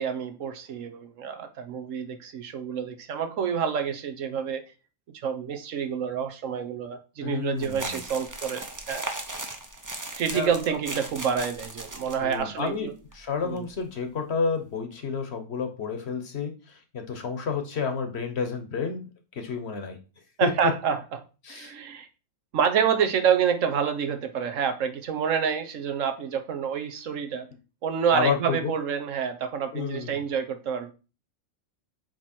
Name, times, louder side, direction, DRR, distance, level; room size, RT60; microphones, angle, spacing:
voice 1, 0.0-4.6 5.2-9.0 10.2-12.9 13.4-13.7 20.4-21.0 21.5-22.1 22.5-27.5 27.8-30.9, right 7 dB, 75° right, 1.2 m, -28 dB
voice 2, 7.2-8.0 10.3-10.8 12.2-12.9 13.1-19.1 19.3-20.0 20.4-20.7 21.4-21.7 28.1-28.7 29.7-30.2, left 5 dB, 55° left, 1.2 m, -30 dB
sound 1, 7.6-12.4 12.7-12.8 13.1-13.2 13.6-13.8, right 2 dB, 20° right, 0.6 m, -37 dB
7.8 x 3.2 x 4.3 m
omnidirectional pair, 1.4 m